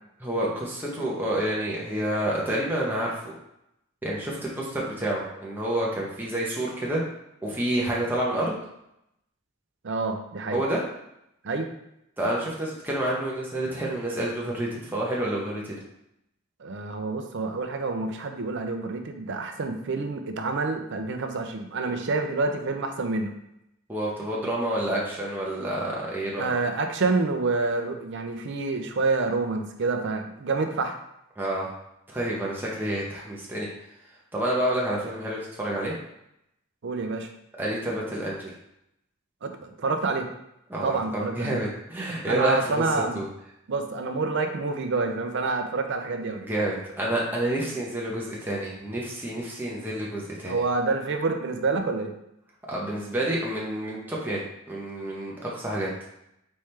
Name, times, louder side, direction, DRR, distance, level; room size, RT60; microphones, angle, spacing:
voice 1, 0.2-3.3 4.0-7.0 7.4-8.5 10.5-10.8 12.2-15.8 23.9-26.5 31.4-31.7 32.1-33.7 34.3-35.9 37.6-38.5 40.7-42.8 43.1-43.3 46.4-50.6 52.7-55.9, right 1 dB, 10° right, -5 dB, 0.8 m, -29 dB
voice 2, 9.8-10.6 11.4-11.7 16.6-23.4 26.4-30.9 36.8-37.3 39.4-40.3 40.8-41.6 42.3-43.2 43.7-46.4 50.5-52.1, right 3 dB, 60° right, 5 dB, 0.5 m, -28 dB
4.3 x 3.5 x 3.2 m, 0.81 s
head